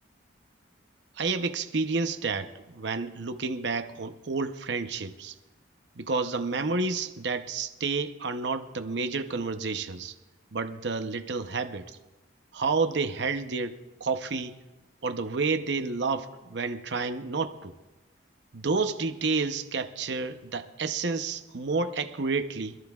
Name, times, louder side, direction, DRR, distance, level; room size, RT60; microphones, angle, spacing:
voice 1, 1.2-5.3 6.0-10.1 10.5-12.0 12.5-14.5 15.0-17.7 18.5-22.8, right 4 dB, 65° right, 0.8 m, -30 dB
25.5 x 14.0 x 2.4 m
head